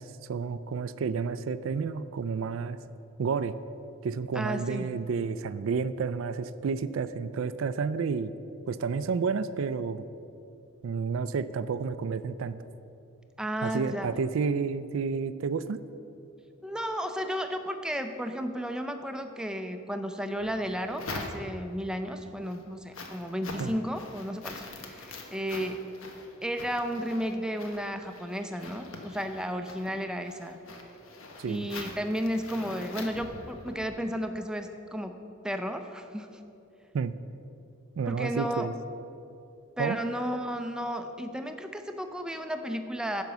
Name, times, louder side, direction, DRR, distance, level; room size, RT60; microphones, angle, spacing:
voice 1, 0.0-2.8 3.2-3.5 4.0-8.3 8.7-10.1 10.8-12.6 13.6-15.8 23.6-23.7 31.4-31.7 36.9-37.1 38.0-38.7 39.8-40.0, right 5 dB, 75° right, 14 dB, 0.4 m, -30 dB
voice 2, 4.3-4.9 13.4-14.1 16.6-25.8 26.4-30.6 31.5-35.2 35.4-36.3 38.1-38.7 39.8-43.2, equal, 5° right, 6 dB, 0.5 m, -33 dB
sound 1, 20.4-21.8 22.3-33.9, left 3 dB, 80° left, 1.1 m, -44 dB
10.5 x 5.3 x 6.8 m, 2.7 s
head